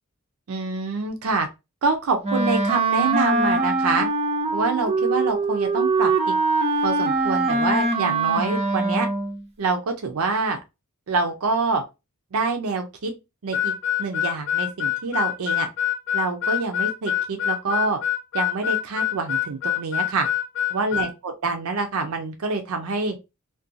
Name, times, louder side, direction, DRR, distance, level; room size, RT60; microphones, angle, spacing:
voice 1, 0.5-1.5 1.8-4.1 4.5-6.1 6.8-9.1 9.6-10.6 11.1-11.8 12.3-13.1 13.4-13.7 14.0-15.7 16.1-18.0 18.3-20.3 20.7-23.2, right 4 dB, 80° right, 5 dB, 0.5 m, -26 dB
Wind instrument woodwind instrument, 2.2-9.4, right 3 dB, 30° right, 0.4 m, -22 dB
Harmonica, 13.5-21.1, left 11 dB, 60° left, 0.4 m, -25 dB
2.5 x 2.2 x 2.5 m, 0.25 s
head